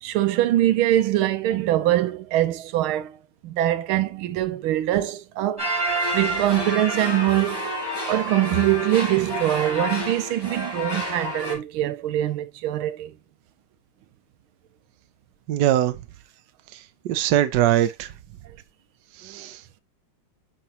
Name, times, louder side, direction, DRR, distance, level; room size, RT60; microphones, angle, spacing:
voice 1, 0.0-3.2 3.4-5.7 6.1-7.7 8.1-13.1, right 14 dB, 80° right, 1.5 m, -23 dB
sound 1, 5.6-11.5, right 1 dB, 10° left, 2.1 m, -29 dB
voice 2, 15.5-16.0 17.0-18.1 19.2-19.6, right 12 dB, 65° right, 1.2 m, -21 dB
8.8 x 5.0 x 2.9 m
omnidirectional pair, 2.3 m